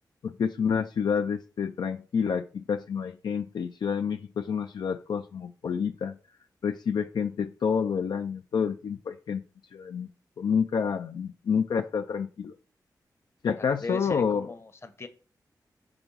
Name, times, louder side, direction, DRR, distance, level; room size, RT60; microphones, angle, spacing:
voice 1, 0.2-6.2 6.6-9.4 9.7-10.1 10.4-12.5 13.4-14.5, left 6 dB, 75° left, 5 dB, 0.5 m, -28 dB
voice 2, 13.6-15.1, left 3 dB, 35° left, 9 dB, 0.8 m, -39 dB
6.0 x 3.4 x 5.4 m, 0.37 s
cardioid pair, 70°, 7 cm